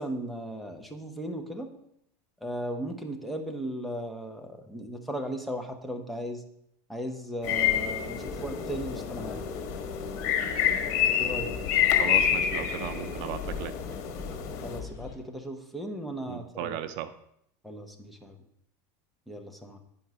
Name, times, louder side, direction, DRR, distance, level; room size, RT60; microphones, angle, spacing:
voice 1, 0.0-1.7 2.4-6.4 6.9-9.4 11.2-11.5 14.6-16.8 17.6-18.4 19.3-19.8, right 1 dB, ahead, 3 dB, 0.8 m, -36 dB
sound 1, 7.4-14.8, left 9 dB, 65° left, 1.3 m, -28 dB
sound 2, 8.2-15.2, left 5 dB, 40° left, 1.7 m, -44 dB
voice 2, 12.0-13.8 16.3-17.1, right 12 dB, 55° right, 11 dB, 0.5 m, -36 dB
9.4 x 5.4 x 4.8 m, 0.74 s
supercardioid pair, 155°, 9 cm